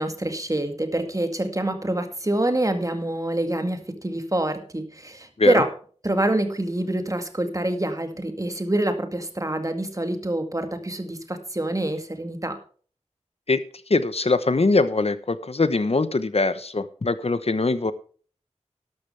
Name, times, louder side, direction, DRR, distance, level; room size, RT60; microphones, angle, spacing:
voice 1, 0.0-5.7 6.0-12.6, right 1 dB, 25° right, 6 dB, 2.1 m, -26 dB
voice 2, 13.9-17.9, left 3 dB, 55° left, 13 dB, 1.0 m, -22 dB
12.5 x 12.0 x 3.4 m, 0.43 s
wide cardioid pair, 60°, 12 cm